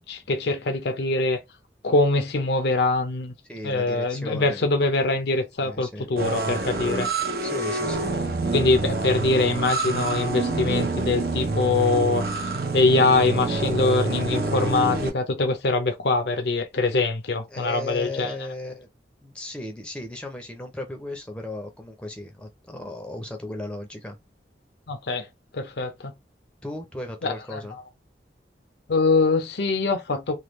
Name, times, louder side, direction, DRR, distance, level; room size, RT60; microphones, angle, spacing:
voice 1, 0.0-1.4 1.8-3.3 3.6-7.1 8.5-18.4 24.9-25.3 25.5-26.1 27.2-27.8 28.9-30.4, left 3 dB, 70° left, 0.6 m, -23 dB
voice 2, 3.5-4.6 5.6-6.1 7.4-8.1 17.5-18.9 19.2-24.2 26.6-27.8, left 1 dB, 5° left, 0.6 m, -36 dB
sound 1, 6.2-15.1, right 3 dB, 55° right, 0.7 m, -27 dB
3.3 x 2.3 x 3.0 m
head